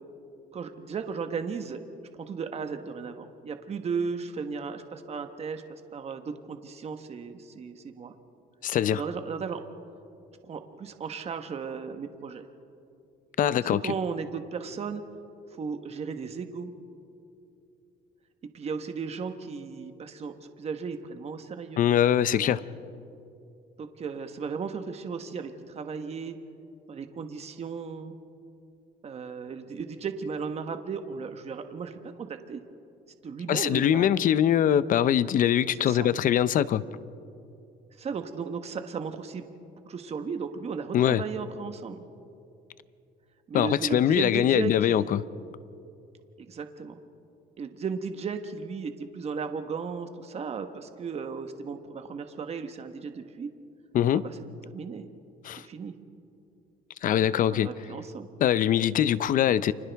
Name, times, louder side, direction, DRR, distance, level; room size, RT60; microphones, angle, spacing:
voice 1, 0.5-1.8 2.3-8.1 8.9-9.6 10.5-12.4 13.6-15.0 15.5-16.7 18.5-21.8 22.3-22.5 23.8-26.4 26.9-28.1 29.0-32.6 33.2-34.3 35.8-36.1 38.0-39.5 39.8-42.0 43.5-45.1 46.4-47.0 47.6-53.5 54.1-54.3 54.7-55.0 55.6-55.9 57.5-58.3, right 5 dB, 40° right, 7 dB, 1.2 m, -35 dB
voice 2, 8.6-9.0 13.4-13.9 21.8-22.6 33.5-36.8 40.9-41.2 43.5-45.2 53.9-54.2 55.4-55.6 57.0-57.7 58.4-59.7, left 10 dB, 55° left, 17 dB, 0.6 m, -23 dB
30.0 x 25.0 x 3.5 m, 2.6 s
cardioid pair, 110°, 17 cm